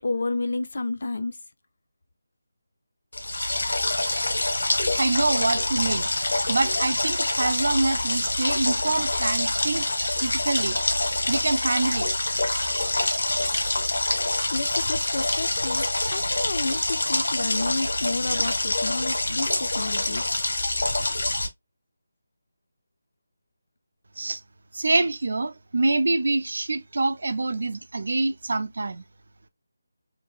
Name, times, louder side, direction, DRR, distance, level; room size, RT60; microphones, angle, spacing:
voice 1, 0.0-1.4 14.5-20.5, left 2 dB, 55° left, 0.5 m, -31 dB
sound 1, 3.1-21.5, left 2 dB, 80° left, 0.9 m, -26 dB
voice 2, 4.9-6.1 6.5-9.9 10.2-10.8 11.3-12.1 24.2-24.4 24.7-29.0, right 3 dB, 60° right, 0.5 m, -25 dB
3.2 x 2.8 x 2.4 m
figure-of-eight pair, 175°, 0 cm